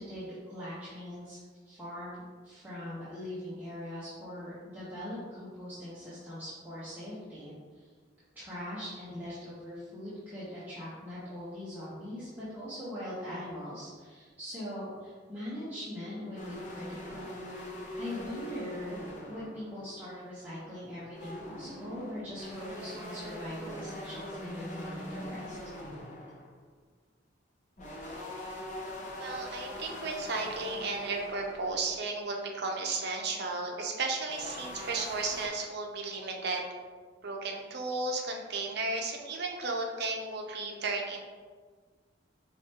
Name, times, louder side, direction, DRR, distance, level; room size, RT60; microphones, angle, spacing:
voice 1, 0.0-1.4 1.6-2.2 2.4-7.9 8.3-17.3 17.9-19.0 19.3-25.6, left 1 dB, 10° right, -11 dB, 0.9 m, -41 dB
sound 1, 16.4-20.2 20.9-26.5 27.8-32.0 34.3-35.5, left 1 dB, 40° left, 0.8 m, -42 dB
voice 2, 29.2-36.6 37.2-41.2, right 3 dB, 60° right, 1 dB, 0.6 m, -34 dB
5.0 x 3.2 x 2.8 m, 1.5 s
head